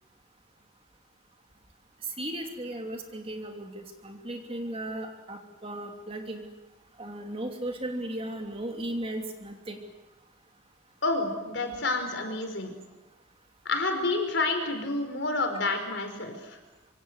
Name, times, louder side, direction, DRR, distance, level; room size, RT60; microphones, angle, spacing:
voice 1, 2.2-6.4 7.0-9.8, right 1 dB, 30° right, 3 dB, 2.9 m, -36 dB
voice 2, 11.0-12.7 13.6-16.6, left 3 dB, 60° left, 6 dB, 4.8 m, -29 dB
25.5 x 25.0 x 8.1 m, 1.1 s
head